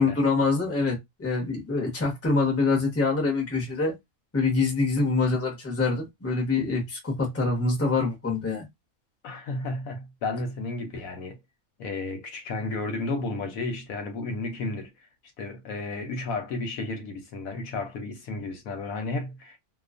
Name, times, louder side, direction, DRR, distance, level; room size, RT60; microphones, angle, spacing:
voice 1, 0.0-4.0 4.3-8.6, left 3 dB, 15° left, 0.7 m, -25 dB
voice 2, 9.2-11.4 11.8-14.9 15.4-19.6, left 3 dB, 70° left, 1.0 m, -32 dB
2.4 x 2.3 x 2.4 m
omnidirectional pair, 1.5 m